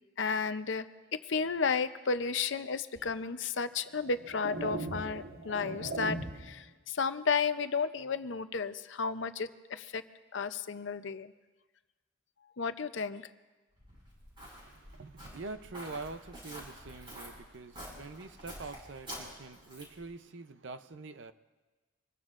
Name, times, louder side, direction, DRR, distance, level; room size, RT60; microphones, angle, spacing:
voice 1, 0.2-10.0 10.3-11.3 12.6-13.2, left 5 dB, 60° left, 0.6 m, -33 dB
sound 1, 3.0-3.1 3.8-6.6, right 2 dB, 85° right, 1.4 m, -39 dB
Walk footsteps, 13.8-20.1, equal, 25° right, 5.6 m, -48 dB
voice 2, 14.4-21.3, right 3 dB, 60° right, 0.6 m, -45 dB
25.0 x 20.5 x 2.5 m
head